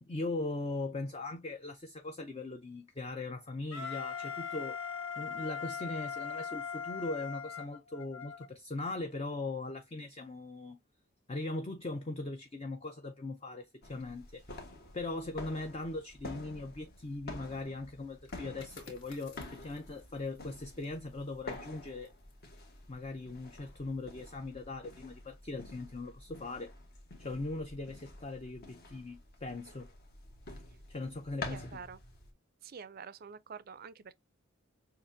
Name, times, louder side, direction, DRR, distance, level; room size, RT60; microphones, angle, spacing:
voice 1, 0.0-4.8 5.2-10.8 11.3-14.5 14.9-22.1 22.9-26.7 27.2-29.9 30.9-31.7, left 2 dB, 30° left, 0.5 m, -40 dB
Wind instrument woodwind instrument, 3.7-8.5, left 6 dB, 80° left, 0.9 m, -40 dB
sound 1, 13.8-32.3, left 2 dB, 45° left, 1.5 m, -49 dB
sound 2, 18.1-23.6 24.0-24.3, left 3 dB, 60° left, 2.0 m, -59 dB
voice 2, 31.4-32.0 32.6-34.1, right 6 dB, 45° right, 0.4 m, -47 dB
6.7 x 2.5 x 2.6 m
head